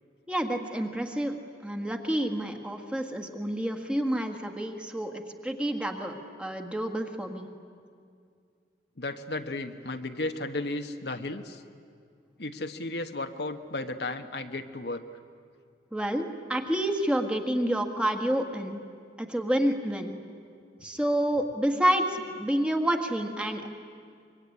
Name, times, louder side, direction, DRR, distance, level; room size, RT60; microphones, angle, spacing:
voice 1, 0.3-1.4 1.6-7.5 15.9-18.8 19.2-20.2 20.8-23.7, right 1 dB, 5° right, 4 dB, 1.7 m, -29 dB
voice 2, 9.0-11.6 12.4-15.0, left 2 dB, 70° left, 7 dB, 1.2 m, -34 dB
25.0 x 23.0 x 10.0 m, 2.3 s
head